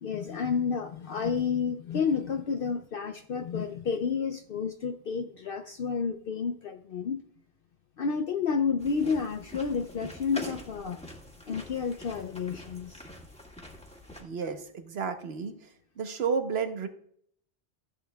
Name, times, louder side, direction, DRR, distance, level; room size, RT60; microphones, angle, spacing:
voice 1, 0.0-7.2 8.0-11.0 11.5-13.0, left 6 dB, 60° left, 7 dB, 0.7 m, -30 dB
sound 1, 8.8-14.2, left 1 dB, 5° left, 1.6 m, -44 dB
voice 2, 14.2-15.5 16.0-16.9, right 5 dB, 65° right, 8 dB, 1.1 m, -31 dB
14.0 x 8.5 x 2.3 m, 0.64 s
omnidirectional pair, 1.2 m